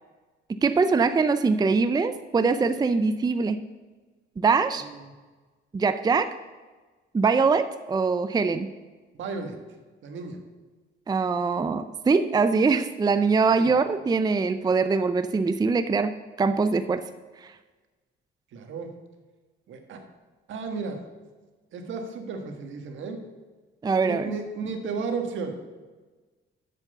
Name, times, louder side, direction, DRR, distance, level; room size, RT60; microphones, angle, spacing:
voice 1, 0.6-3.6 4.4-4.8 5.7-6.3 7.1-8.7 11.1-17.0 17.4-17.5 23.8-24.3, right 4 dB, 20° right, 11 dB, 0.4 m, -23 dB
voice 2, 9.1-9.6 10.0-10.4 13.6-13.7 18.5-18.9 19.7-20.0 20.5-21.0 21.7-23.2 24.0-25.5, right 4 dB, 75° right, 5 dB, 1.5 m, -33 dB
7.6 x 7.5 x 6.7 m, 1.3 s
cardioid pair, 90°, 20 cm